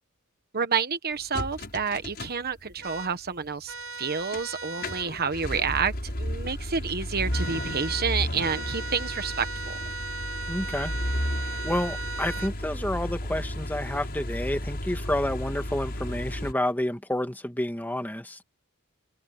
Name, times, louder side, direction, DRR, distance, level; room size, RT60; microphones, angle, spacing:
voice 1, 0.5-9.7, right 6 dB, 45° right, 1.2 m, -29 dB
sound 1, 1.3-3.0 3.4-3.5 4.0-4.4 4.7-16.5, left 1 dB, 50° left, 5.9 m, -33 dB
sound 2, 2.8-3.1 3.7-5.1 7.3-8.1 8.4-12.5, right 3 dB, 85° right, 3.3 m, -37 dB
voice 2, 10.5-10.9 11.6-18.4, left 1 dB, 10° left, 2.3 m, -29 dB
open air
head